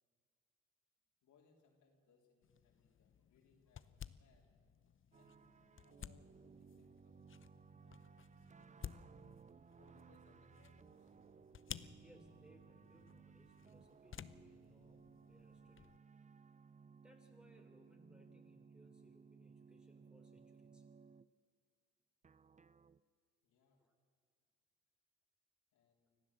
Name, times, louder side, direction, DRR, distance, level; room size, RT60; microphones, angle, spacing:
voice 1, 1.2-4.5 5.1-5.5 5.8-9.4 9.8-11.1 23.4-23.8 25.7-26.2, left 5 dB, 85° left, 0 dB, 3.9 m, -73 dB
sound 1, 2.4-16.0, left 9 dB, 40° left, 0.7 m, -56 dB
sound 2, 5.1-21.3 22.2-23.0, right 5 dB, 25° right, 0.5 m, -61 dB
voice 2, 11.8-15.9 17.0-20.9 23.8-23.9, equal, 5° right, 3 dB, 3.6 m, -67 dB
25.0 x 15.0 x 7.5 m, 2.2 s
cardioid pair, 90°, 30 cm